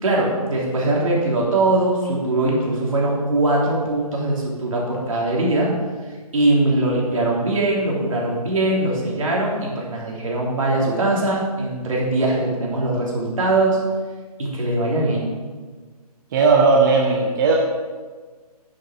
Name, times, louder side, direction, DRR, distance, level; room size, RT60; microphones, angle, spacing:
voice 1, 0.0-5.7 6.3-13.8 14.4-15.3, right 2 dB, 55° right, -3 dB, 3.3 m, -21 dB
voice 2, 16.3-17.6, right 4 dB, 30° right, 0 dB, 0.8 m, -16 dB
9.3 x 7.5 x 5.0 m, 1.4 s
figure-of-eight pair, 145°, 20 cm